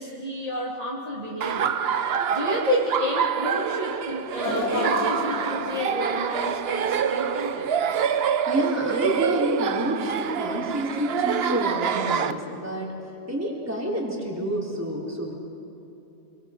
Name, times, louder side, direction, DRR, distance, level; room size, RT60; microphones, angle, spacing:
voice 1, 0.0-1.7 2.3-7.7, left 1 dB, 30° right, -6 dB, 2.7 m, -30 dB
Laughter, 1.4-12.3, right 8 dB, 65° right, 0.9 m, -26 dB
sound 1, 4.4-7.6 8.0-8.2 9.2-9.3, left 4 dB, 75° left, 2.6 m, -32 dB
voice 2, 8.5-13.0 13.3-15.3, equal, 15° right, -3 dB, 3.7 m, -28 dB
27.0 x 24.0 x 5.1 m, 2.9 s
omnidirectional pair, 1.2 m